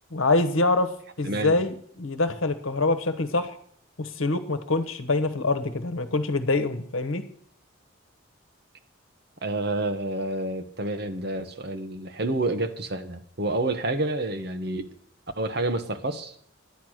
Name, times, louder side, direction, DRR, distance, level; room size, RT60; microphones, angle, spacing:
voice 1, 0.1-0.9 1.2-3.5 4.0-7.2, left 2 dB, 80° left, 1.1 m, -25 dB
voice 2, 1.2-1.6 9.4-14.9 15.4-16.3, right 2 dB, 50° right, 1.1 m, -29 dB
10.5 x 10.0 x 6.3 m
head